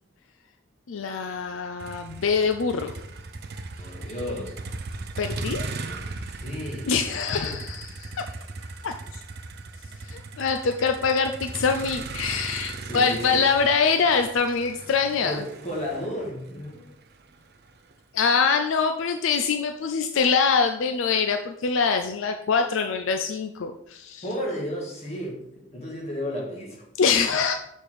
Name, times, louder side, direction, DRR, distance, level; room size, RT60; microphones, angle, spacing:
voice 1, 0.9-2.9 5.2-5.7 6.9-8.2 8.8-9.2 10.0-15.4 18.1-24.2 27.0-27.5, left 5 dB, 70° left, 6 dB, 0.4 m, -24 dB
Motor vehicle (road), 1.8-17.9, right 3 dB, 50° right, 0.6 m, -38 dB
voice 2, 3.8-4.5 5.8-7.5 12.8-13.4 15.2-16.9 24.2-26.9 27.2-27.4, left 1 dB, 30° left, -3 dB, 1.9 m, -33 dB
6.7 x 4.3 x 4.8 m, 0.78 s
head